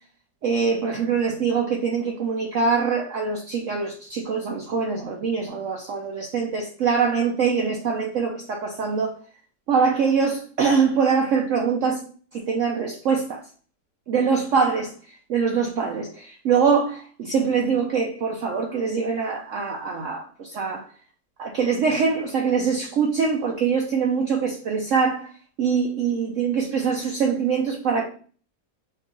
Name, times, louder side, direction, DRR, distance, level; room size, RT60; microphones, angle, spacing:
voice 1, 0.4-9.1 9.7-12.0 12.3-13.4 14.1-20.9 21.4-25.3 25.6-28.1, right 5 dB, 70° right, 2 dB, 0.7 m, -23 dB
5.5 x 2.4 x 3.7 m, 0.43 s
omnidirectional pair, 1.9 m